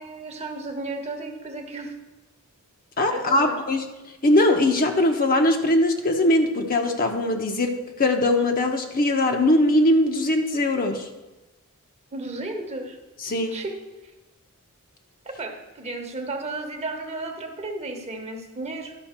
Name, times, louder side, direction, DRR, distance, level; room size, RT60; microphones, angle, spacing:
voice 1, 0.0-1.9 3.1-3.6 12.1-13.0 13.5-13.8 15.2-18.9, right 2 dB, 30° right, 4 dB, 1.0 m, -33 dB
voice 2, 3.0-3.8 4.2-11.1 13.2-13.6, left 1 dB, 40° left, 4 dB, 0.8 m, -21 dB
11.5 x 5.6 x 4.4 m, 1.1 s
head